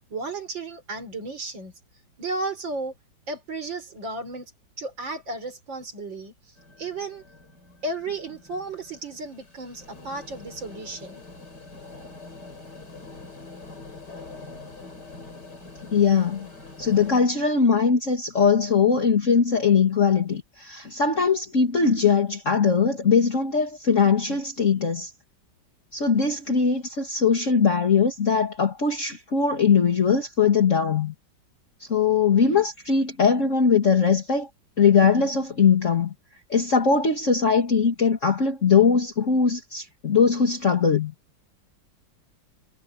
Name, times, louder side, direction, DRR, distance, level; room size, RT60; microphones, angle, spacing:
voice 1, 0.1-1.7 2.2-2.9 3.3-4.5 4.8-6.3 6.8-7.2 7.8-11.2, right 3 dB, 90° right, 5.0 m, -33 dB
sound 1, 6.6-17.2, left 3 dB, 65° left, 5.1 m, -44 dB
voice 2, 15.9-16.5 16.8-25.1 25.9-31.1 31.8-34.5 34.8-36.1 36.5-41.1, left 5 dB, 40° left, 2.5 m, -21 dB
omnidirectional pair, 2.0 m